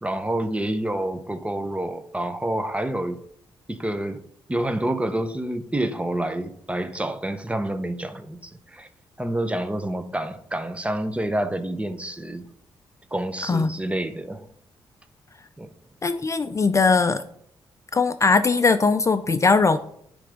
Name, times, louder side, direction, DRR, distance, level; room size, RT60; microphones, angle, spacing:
voice 1, 0.0-3.2 3.7-4.2 4.5-8.9 9.2-12.4 13.1-14.5 15.6-15.7, right 1 dB, 15° right, 10 dB, 0.8 m, -28 dB
voice 2, 16.0-17.2 17.9-19.8, left 4 dB, 30° left, 10 dB, 0.4 m, -20 dB
9.8 x 3.4 x 5.1 m, 0.69 s
cardioid pair, 65°, 10 cm